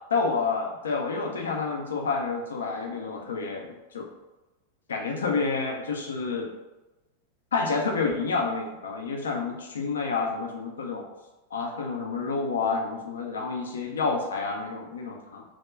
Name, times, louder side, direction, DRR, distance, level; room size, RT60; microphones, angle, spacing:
voice 1, 0.1-4.1 4.9-6.5 7.5-11.1 11.5-15.4, left 4 dB, 65° left, 2 dB, 0.3 m, -29 dB
2.2 x 2.1 x 3.3 m, 1.0 s
figure-of-eight pair, 90°, 0 cm